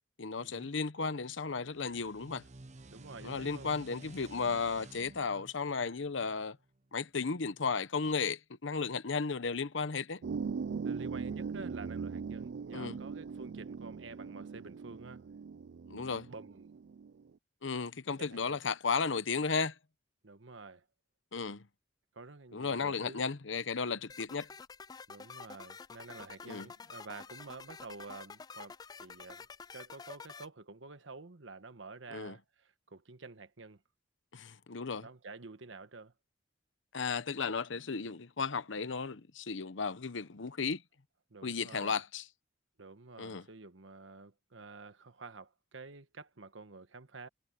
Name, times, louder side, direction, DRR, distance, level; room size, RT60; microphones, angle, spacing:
voice 1, 0.2-2.4 3.2-6.6 6.9-10.2 12.7-13.0 15.9-16.3 17.6-19.8 21.3-21.7 22.5-24.5 26.4-26.7 32.1-32.4 34.3-35.1 36.9-40.8 41.4-42.3 43.2-43.5, left 5 dB, 75° left, 0.9 m, -34 dB
sound 1, 1.6-6.9, right 2 dB, 40° right, 0.9 m, -53 dB
voice 2, 2.9-3.7 10.8-15.2 16.3-16.7 18.1-18.6 20.2-20.8 22.1-23.2 25.1-29.5 29.7-33.8 35.0-36.1 41.3-42.0 42.8-47.3, right 3 dB, 80° right, 1.3 m, -49 dB
sound 2, 10.2-17.2, right 5 dB, 60° right, 0.4 m, -40 dB
sound 3, 24.1-30.5, left 5 dB, 20° left, 0.3 m, -49 dB
head